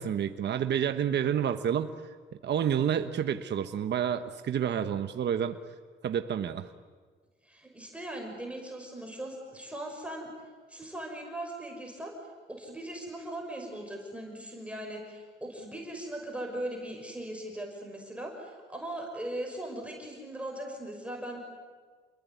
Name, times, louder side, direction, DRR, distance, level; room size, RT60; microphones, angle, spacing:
voice 1, 0.0-1.9 2.4-5.6 6.0-6.7, right 9 dB, 60° right, 8 dB, 1.3 m, -29 dB
voice 2, 7.4-10.3 10.7-12.1 12.5-21.4, right 1 dB, 5° right, 1 dB, 6.0 m, -39 dB
29.0 x 21.5 x 9.4 m, 1.5 s
cardioid pair, 90°, 20 cm